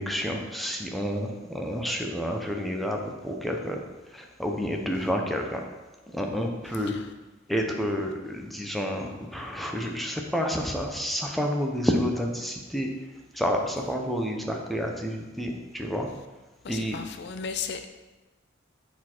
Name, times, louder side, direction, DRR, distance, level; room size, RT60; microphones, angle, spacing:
voice 1, 0.0-3.8 4.1-5.6 6.1-6.9 7.5-12.9 13.3-16.1 16.7-17.0, equal, ahead, 1 dB, 0.7 m, -29 dB
voice 2, 6.7-7.1 9.8-9.9 13.8-13.9 16.6-17.9, left 6 dB, 60° left, 7 dB, 0.5 m, -36 dB
7.2 x 4.1 x 4.4 m, 1.1 s
head